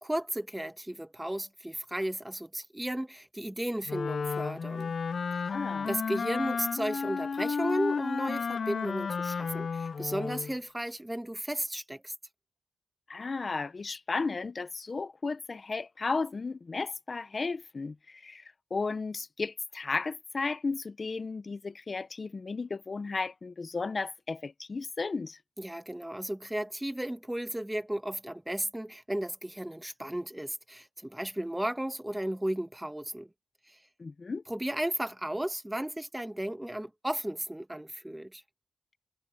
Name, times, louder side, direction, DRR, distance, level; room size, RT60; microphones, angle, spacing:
voice 1, 0.0-4.9 5.9-12.1 25.6-33.3 33.7-33.8 34.5-38.4, right 1 dB, 10° right, 1.7 m, -34 dB
Wind instrument woodwind instrument, 3.9-10.5, left 5 dB, 55° left, 0.4 m, -32 dB
voice 2, 5.5-5.9 13.1-18.4 18.7-25.4 34.0-34.4, left 4 dB, 40° left, 0.9 m, -34 dB
cardioid pair, 80°, 0 cm